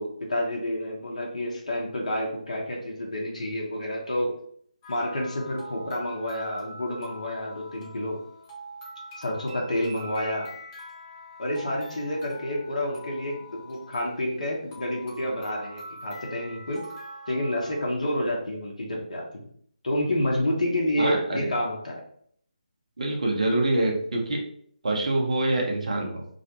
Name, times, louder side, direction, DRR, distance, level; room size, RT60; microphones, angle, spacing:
voice 1, 0.0-4.3 4.9-8.2 9.2-10.5 11.4-16.8 17.3-19.2 19.8-22.0, left 1 dB, 60° left, -2 dB, 0.7 m, -29 dB
sound 1, 4.8-17.9, equal, 20° left, 0.8 m, -44 dB
voice 2, 21.0-21.5 23.0-24.4 24.8-26.2, right 2 dB, 55° right, 0 dB, 0.7 m, -25 dB
2.4 x 2.1 x 2.7 m, 0.63 s
figure-of-eight pair, 150°, 4 cm